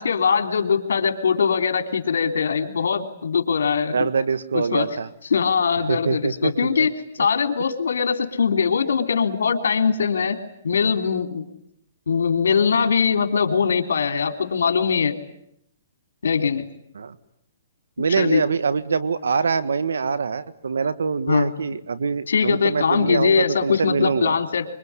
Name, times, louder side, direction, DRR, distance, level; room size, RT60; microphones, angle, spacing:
voice 1, 0.0-4.1 4.5-4.9 5.3-6.9 7.2-10.4 10.6-11.4 12.1-15.2 16.2-16.6 18.2-18.4 21.3-21.5 22.3-24.6, left 6 dB, 85° left, 7 dB, 3.4 m, -21 dB
voice 2, 3.9-5.1 5.9-6.5 6.8-6.9 16.9-17.1 18.0-24.4, right 5 dB, 90° right, 14 dB, 1.6 m, -24 dB
25.5 x 24.0 x 9.8 m, 0.76 s
hypercardioid pair, 150°, 0 cm